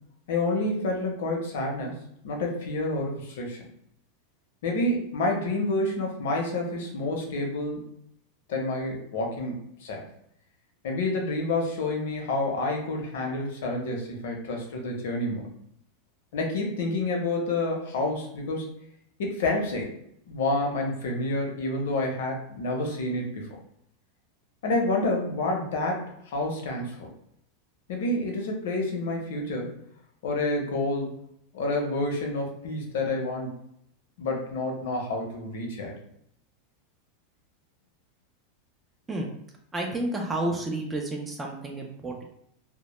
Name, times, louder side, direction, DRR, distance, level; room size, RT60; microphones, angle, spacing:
voice 1, 0.3-2.0 2.2-3.7 4.6-7.8 8.5-10.0 10.8-15.5 16.3-18.7 19.2-19.9 20.3-23.6 24.6-27.1 27.9-29.8 30.2-31.1 31.5-33.5 34.2-35.9, left 2 dB, 70° left, 1 dB, 0.7 m, -29 dB
voice 2, 39.7-42.2, right 1 dB, 10° right, 1 dB, 0.3 m, -30 dB
2.1 x 2.0 x 2.9 m, 0.74 s
supercardioid pair, 165°, 0 cm